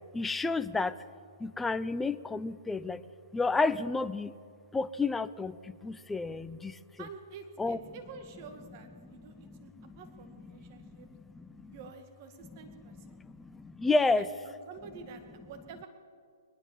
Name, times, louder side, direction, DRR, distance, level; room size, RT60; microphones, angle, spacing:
voice 1, 0.1-1.0 1.4-3.0 3.3-4.3 4.7-6.8 7.6-7.8 9.4-10.0 10.7-10.9 11.3-11.7 13.3-14.3, left 3 dB, 5° left, 13 dB, 0.5 m, -31 dB
voice 2, 7.0-9.7 10.0-11.1 11.7-13.2 14.1-15.9, right 5 dB, 40° right, 7 dB, 2.0 m, -49 dB
21.5 x 19.5 x 7.3 m, 2.2 s
hypercardioid pair, 145°, 2 cm